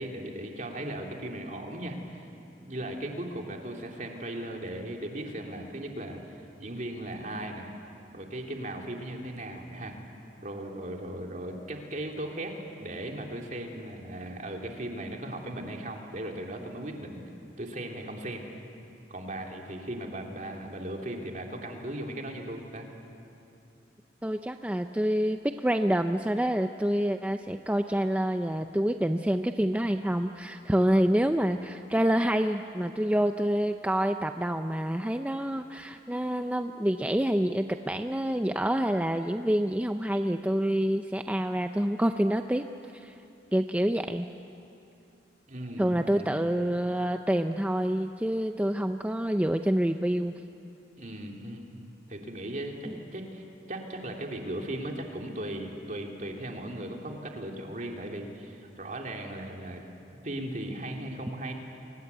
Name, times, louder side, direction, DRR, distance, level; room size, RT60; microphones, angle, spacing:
voice 1, 0.0-2.2 2.6-7.7 8.1-10.0 10.4-12.5 12.8-17.2 17.6-18.4 19.1-22.9 45.5-46.3 51.0-51.8 52.1-59.8 60.2-61.5, right 1 dB, 45° right, 1 dB, 3.1 m, -37 dB
voice 2, 24.2-42.6 42.9-43.1 43.5-44.3 45.8-50.4 52.9-53.0, right 1 dB, 10° right, 6 dB, 0.5 m, -27 dB
29.5 x 24.5 x 8.2 m, 2.7 s
head